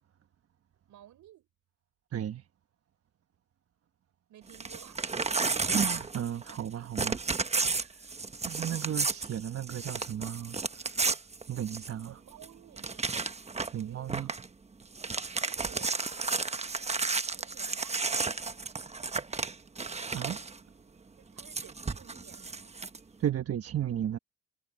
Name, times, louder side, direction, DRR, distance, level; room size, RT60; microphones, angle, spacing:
voice 1, 0.9-1.5 4.3-5.1 12.0-14.3 15.4-18.0 21.2-22.8, right 12 dB, 75° right, 6.6 m, -55 dB
voice 2, 2.1-2.5 5.3-7.2 7.8-8.0 8.4-10.9 11.5-12.2 13.7-14.3 20.1-20.4 23.2-24.2, right 10 dB, 50° right, 1.2 m, -34 dB
Crumpling crinkling / Tearing, 4.5-6.7 6.9-12.1 12.4-12.5 12.8-13.8 14.1-14.5 14.8-20.6 21.4-23.0, right 4 dB, 20° right, 1.1 m, -32 dB
cardioid pair, 90°, 30 cm